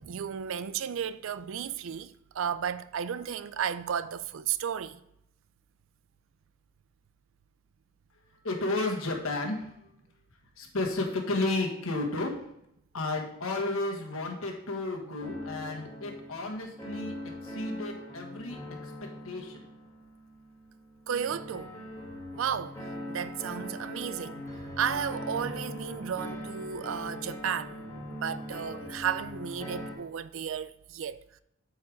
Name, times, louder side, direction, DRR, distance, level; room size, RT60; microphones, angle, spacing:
voice 1, 0.0-5.0 21.1-21.7 22.4-22.8 23.1-24.4 24.8-27.8 28.1-31.2, right 8 dB, 70° right, 0.4 m, -33 dB
voice 2, 8.4-9.7 10.6-12.4 12.9-17.1 17.4-18.6 18.8-18.9 19.2-19.7, left 2 dB, 80° left, 1.5 m, -32 dB
sound 1, 15.2-29.9, left 1 dB, 15° left, 1.7 m, -41 dB
8.4 x 4.7 x 4.8 m
head